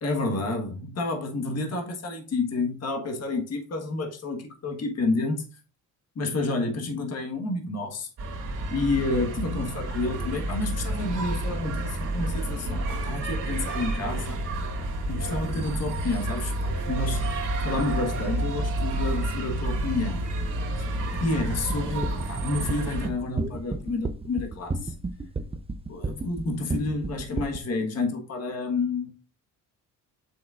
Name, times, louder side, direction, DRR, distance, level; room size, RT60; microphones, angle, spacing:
voice 1, 0.0-5.4 6.1-8.1 8.7-14.4 15.1-17.3 17.6-20.3 21.2-24.9 25.9-29.1, left 2 dB, 50° left, 1.5 m, -29 dB
sound 1, 8.2-23.1, right 1 dB, 60° right, 2.3 m, -30 dB
sound 2, 21.5-27.6, right 3 dB, 15° right, 0.6 m, -31 dB
7.3 x 6.3 x 2.5 m
cardioid pair, 100°, 33 cm